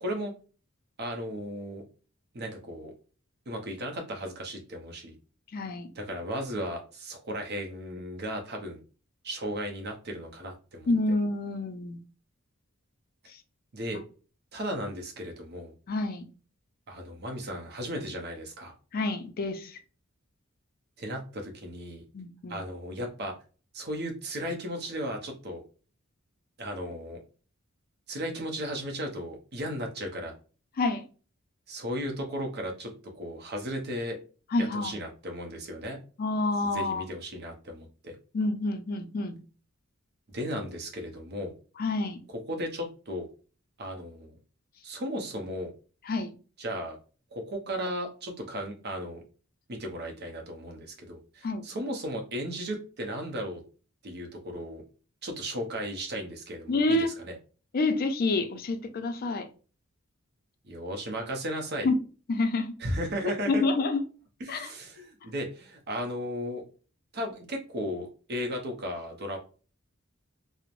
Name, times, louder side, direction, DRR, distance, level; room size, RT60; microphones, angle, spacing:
voice 1, 0.0-0.3 1.0-1.8 2.3-2.9 3.5-5.1 5.9-8.8 9.2-10.9 13.7-14.0 14.5-15.7 16.9-18.7 21.0-22.0 22.5-23.3 23.7-25.6 26.6-27.2 28.1-30.3 31.7-32.9 33.2-34.2 34.6-36.0 36.6-38.1 40.3-41.5 42.3-43.3 43.8-44.4 44.8-45.7 46.6-47.0 47.3-49.2 49.7-53.6 54.0-54.8 55.2-57.4 60.7-61.9 62.8-63.6 64.4-66.6 67.1-69.4, equal, 50° right, 0.6 m, -35 dB
voice 2, 5.5-5.9 10.9-12.0 15.9-16.3 18.9-19.8 22.1-22.6 30.8-31.0 34.5-34.9 36.2-37.0 38.3-39.4 41.8-42.2 46.1-46.3 51.4-51.6 56.7-57.1 57.7-59.5 61.8-62.0 62.3-62.7 63.5-64.0 64.5-64.7, left 2 dB, 45° left, 0.4 m, -28 dB
3.0 x 2.0 x 2.4 m
head